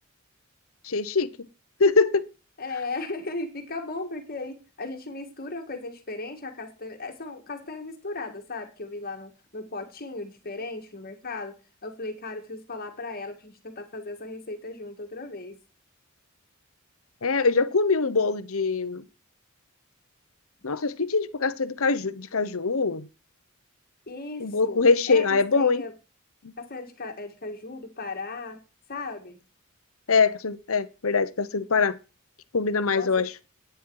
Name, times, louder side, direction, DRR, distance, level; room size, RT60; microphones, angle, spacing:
voice 1, 0.8-1.3 1.8-2.2 17.2-19.0 20.6-23.1 24.4-25.8 26.4-26.5 30.1-32.0 32.5-33.3, left 4 dB, 70° left, 0.9 m, -23 dB
voice 2, 2.6-15.6 24.1-25.9 26.6-28.6 28.9-29.4 32.9-33.1, left 3 dB, 45° left, 1.9 m, -36 dB
12.0 x 9.3 x 4.8 m
head